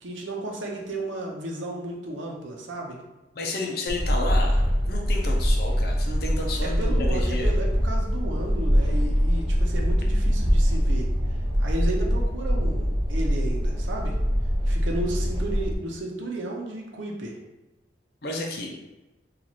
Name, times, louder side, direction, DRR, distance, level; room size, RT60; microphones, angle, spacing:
voice 1, 0.0-3.0 6.6-11.1 11.6-14.2 14.7-17.4, right 1 dB, 85° right, 0 dB, 0.7 m, -33 dB
voice 2, 3.3-7.5 18.2-18.7, left 2 dB, 55° left, 0 dB, 0.6 m, -32 dB
sound 1, 3.9-15.7, equal, 25° right, 0.5 m, -23 dB
3.0 x 2.5 x 4.0 m, 1.1 s
head